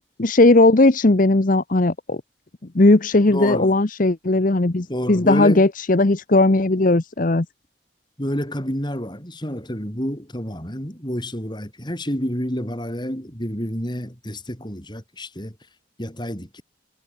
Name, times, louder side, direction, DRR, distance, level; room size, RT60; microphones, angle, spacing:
voice 1, 0.0-2.2 2.7-7.5, left 2 dB, 45° left, 0.9 m, -17 dB
voice 2, 3.3-3.8 4.9-5.7 8.2-15.6 16.0-16.6, equal, 25° left, 6.7 m, -29 dB
head